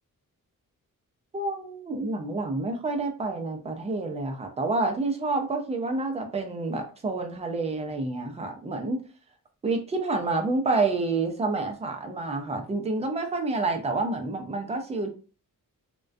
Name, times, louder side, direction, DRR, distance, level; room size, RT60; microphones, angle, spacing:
voice 1, 1.3-9.0 9.6-15.1, right 3 dB, 20° right, 4 dB, 0.3 m, -28 dB
2.3 x 2.2 x 2.4 m, 0.36 s
wide cardioid pair, 175°, 34 cm